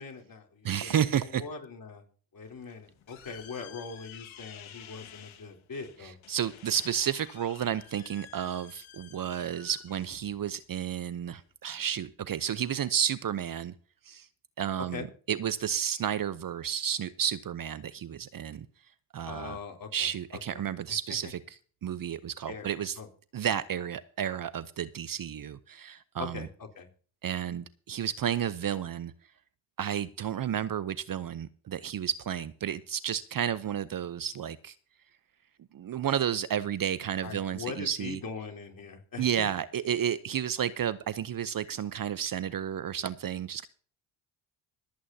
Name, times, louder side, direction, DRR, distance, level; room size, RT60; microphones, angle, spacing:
voice 1, 0.0-2.0 2.3-6.2 14.9-15.1 19.3-20.1 20.5-20.6 22.5-22.7 23.0-23.1 26.2-26.5 26.8-26.9 37.2-39.5, left 5 dB, 40° left, 2 dB, 3.7 m, -41 dB
voice 2, 0.6-1.4 6.0-13.7 14.0-14.3 14.6-18.7 19.1-19.6 19.9-23.0 23.3-26.5 27.2-29.1 29.8-34.7 35.7-38.2 39.2-43.7, right 9 dB, 45° right, 15 dB, 0.8 m, -32 dB
sound 1, 2.4-11.5, left 9 dB, 70° left, 2.1 m, -52 dB
25.5 x 8.6 x 2.8 m, 0.43 s
supercardioid pair, 55°, 49 cm